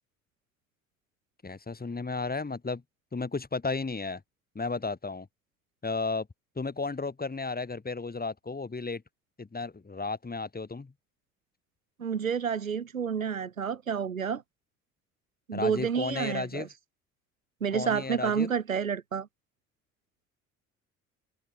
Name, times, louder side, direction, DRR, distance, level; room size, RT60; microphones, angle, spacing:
voice 1, 1.4-2.8 3.1-4.2 4.5-5.3 5.8-6.3 6.6-9.0 9.4-10.9 15.5-16.7 17.7-18.5, left 3 dB, 25° left, 7.3 m, -33 dB
voice 2, 12.0-14.4 15.5-16.7 17.6-19.3, right 7 dB, 90° right, 2.6 m, -29 dB
figure-of-eight pair, 55°, 40 cm